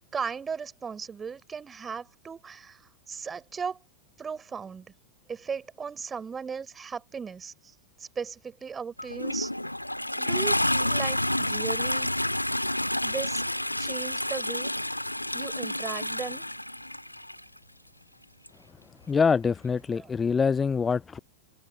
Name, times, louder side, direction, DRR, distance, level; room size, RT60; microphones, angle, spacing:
voice 1, 0.1-3.8 4.2-4.9 5.3-7.7 8.0-9.5 10.2-12.1 13.0-13.4 13.8-14.7 15.3-16.4 20.0-20.1, right 6 dB, 20° right, 6.1 m, -37 dB
Toilet flush, 9.0-17.4 18.5-18.6, left 1 dB, 90° left, 1.7 m, -29 dB
voice 2, 19.1-21.2, left 5 dB, 15° left, 0.4 m, -25 dB
open air
figure-of-eight pair, 90°, 0 cm